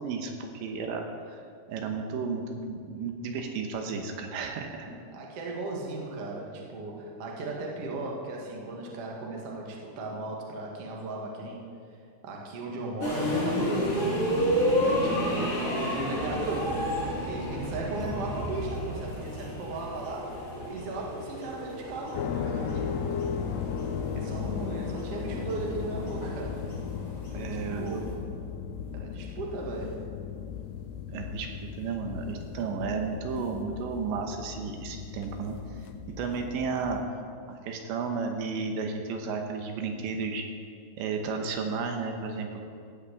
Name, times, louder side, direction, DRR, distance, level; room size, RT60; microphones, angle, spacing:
voice 1, 0.0-1.4 1.7-4.9 27.3-28.0 31.1-31.5 31.8-35.6 36.1-40.4 41.0-42.6, right 4 dB, 75° right, 3 dB, 3.1 m, -33 dB
voice 2, 5.1-11.6 12.2-14.3 14.8-16.8 17.2-20.3 20.7-23.2 24.2-26.6 27.3-28.1 28.9-30.0, right 2 dB, 55° right, -2 dB, 1.7 m, -36 dB
sound 1, 13.0-28.1, equal, 35° left, 3.0 m, -31 dB
sound 2, 22.1-37.0, left 7 dB, 85° left, 2.4 m, -36 dB
15.5 x 5.9 x 8.2 m, 2.3 s
omnidirectional pair, 5.4 m